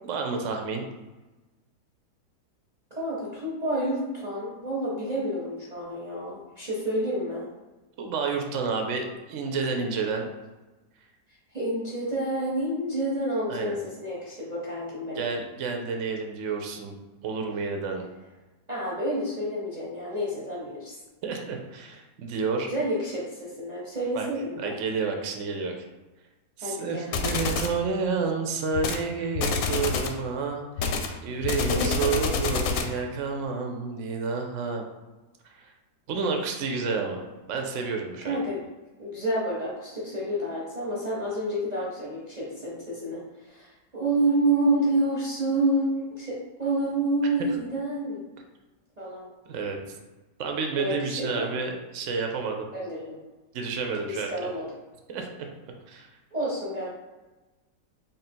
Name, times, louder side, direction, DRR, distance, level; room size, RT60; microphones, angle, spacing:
voice 1, 0.1-0.8 8.0-10.3 13.5-13.8 15.2-16.9 17.2-18.0 21.2-22.7 24.1-24.3 24.6-25.7 26.6-34.8 35.4-35.7 36.1-38.4 49.5-49.8 50.4-52.7 53.5-54.3 55.1-55.3 55.9-56.1, right 4 dB, 65° right, 3 dB, 0.8 m, -30 dB
voice 2, 2.9-7.4 11.5-15.3 18.7-21.0 22.7-24.7 26.6-27.1 31.7-32.2 38.2-38.6 39.0-48.3 49.0-49.3 50.8-51.5 52.7-53.2 54.0-54.6 56.3-56.9, right 1 dB, 35° right, -6 dB, 0.8 m, -29 dB
sound 1, 27.1-27.8 28.7-29.0 29.3-30.2 30.8-33.0, left 5 dB, 70° left, 0.9 m, -27 dB
3.6 x 2.6 x 4.3 m, 1.2 s
omnidirectional pair, 1.7 m